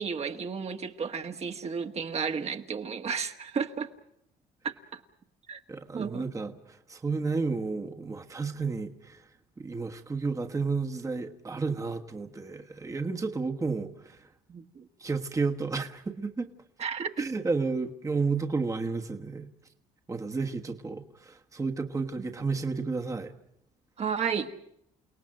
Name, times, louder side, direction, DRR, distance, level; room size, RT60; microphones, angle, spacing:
voice 1, 0.0-3.9 4.6-5.0 5.5-5.6 5.9-6.2 14.5-14.9 16.8-17.3 22.2-22.3 24.0-24.5, right 6 dB, 40° right, 5 dB, 1.5 m, -33 dB
voice 2, 5.7-14.3 15.0-16.5 17.2-19.5 20.1-23.3, right 4 dB, 20° right, 3 dB, 1.4 m, -32 dB
29.5 x 18.0 x 7.7 m, 0.79 s
cardioid pair, 110°, 17 cm